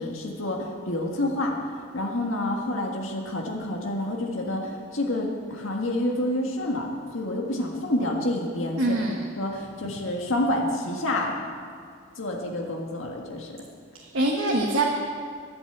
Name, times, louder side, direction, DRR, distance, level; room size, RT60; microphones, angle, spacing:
voice 1, 0.0-1.5 1.9-6.9 7.1-9.0 9.4-11.3 12.2-13.5, left 1 dB, 85° left, 0 dB, 1.7 m, -28 dB
voice 2, 8.8-9.2 13.9-14.8, right 2 dB, 75° right, -1 dB, 1.4 m, -24 dB
12.5 x 10.5 x 8.0 m, 2.2 s
head